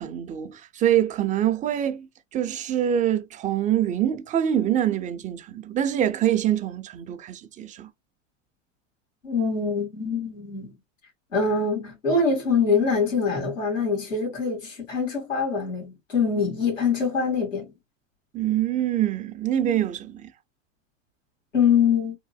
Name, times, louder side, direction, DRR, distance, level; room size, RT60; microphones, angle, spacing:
voice 1, 0.0-7.9 18.3-20.3, right 11 dB, 20° right, 0.4 m, -25 dB
voice 2, 9.2-10.8 11.3-17.7 21.5-22.2, left 5 dB, 90° left, 2.2 m, -24 dB
3.6 x 2.6 x 2.2 m
hypercardioid pair, 90°, 38 cm